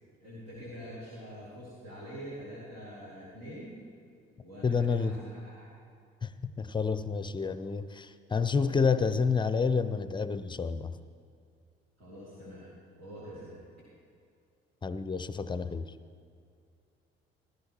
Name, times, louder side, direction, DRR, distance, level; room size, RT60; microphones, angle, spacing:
voice 1, 0.2-3.8 4.4-5.7 12.0-12.7 13.0-13.6, equal, 75° right, -9 dB, 2.8 m, -45 dB
voice 2, 4.6-5.2 6.2-10.9 14.8-15.9, left 5 dB, 15° left, 13 dB, 0.5 m, -29 dB
15.0 x 13.0 x 3.0 m, 2.4 s
figure-of-eight pair, 45°, 31 cm